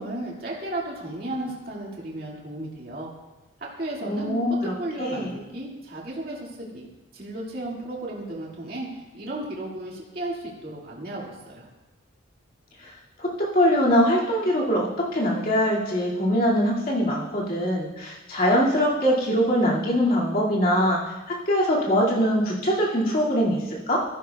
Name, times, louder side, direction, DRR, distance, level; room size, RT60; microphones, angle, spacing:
voice 1, 0.0-3.1 3.8-6.9 7.1-11.7, right 1 dB, 45° right, -4 dB, 2.1 m, -34 dB
voice 2, 4.0-4.7 5.0-5.3 12.8-12.9 13.2-24.0, equal, 45° left, -5 dB, 2.2 m, -23 dB
14.0 x 12.0 x 2.3 m, 1.1 s
head